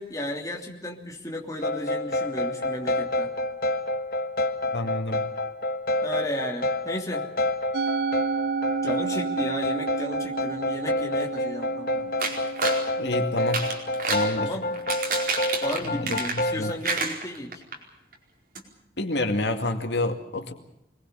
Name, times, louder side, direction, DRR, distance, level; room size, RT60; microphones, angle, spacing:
voice 1, 0.0-3.3 6.0-7.2 8.8-12.1 14.4-14.7 15.6-17.6, left 1 dB, 20° left, 0 dB, 3.1 m, -34 dB
sound 1, 1.6-16.8, left 1 dB, 55° left, 1.6 m, -28 dB
voice 2, 4.7-5.3 13.0-13.7 14.1-14.5 15.8-16.7 19.0-20.5, left 2 dB, 85° left, 5 dB, 2.3 m, -28 dB
Musical instrument, 7.7-14.1, right 5 dB, 70° right, 0.8 m, -31 dB
sound 2, 12.2-12.8 13.4-14.3 14.7-16.6 16.8-17.8 18.1-18.2 18.5-18.6, right 4 dB, 55° right, 4.6 m, -29 dB
25.0 x 20.5 x 7.0 m, 0.83 s
head